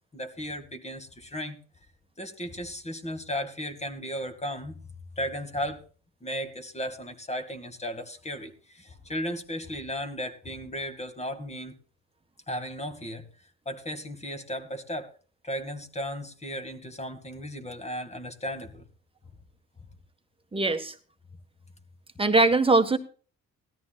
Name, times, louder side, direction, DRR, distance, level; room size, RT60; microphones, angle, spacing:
voice 1, 0.1-1.6 2.2-4.7 5.2-5.8 6.2-11.7 12.5-13.3 13.7-15.1 15.4-18.8, equal, 20° left, 6 dB, 2.2 m, -35 dB
voice 2, 20.5-20.9 22.2-23.0, right 3 dB, 20° right, 7 dB, 1.5 m, -21 dB
18.0 x 13.5 x 2.4 m, 0.38 s
cardioid pair, 90°, 30 cm